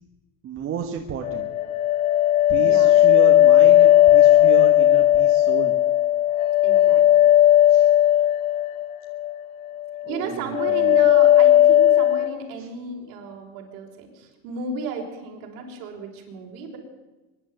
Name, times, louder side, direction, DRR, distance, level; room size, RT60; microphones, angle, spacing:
voice 1, 0.4-1.5 2.5-5.7 7.7-7.9 10.0-11.1 12.6-12.7, right 7 dB, 30° right, 2 dB, 1.6 m, -32 dB
sound 1, 1.2-9.4 9.6-10.2 10.5-12.3, left 12 dB, 70° left, 2.1 m, -16 dB
voice 2, 2.5-3.0 6.6-7.0 10.1-16.8, right 4 dB, 50° right, 0 dB, 5.5 m, -34 dB
23.5 x 11.5 x 9.5 m, 1.2 s
cardioid pair, 160°, 42 cm